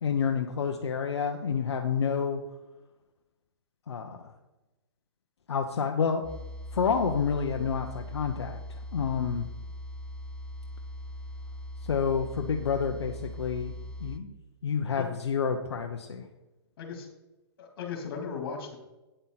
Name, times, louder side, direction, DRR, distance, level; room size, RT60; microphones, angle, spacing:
voice 1, 0.0-2.4 3.9-4.3 5.5-6.3 6.7-9.5 11.8-13.7 14.0-14.3 14.6-16.3, left 6 dB, 85° left, 3 dB, 0.9 m, -29 dB
sound 1, 6.2-14.2, left 1 dB, 5° left, 0.5 m, -40 dB
voice 2, 16.8-17.1 17.6-18.8, left 6 dB, 55° left, 3 dB, 2.8 m, -37 dB
9.1 x 8.1 x 4.1 m, 1.0 s
hypercardioid pair, 140°, 14 cm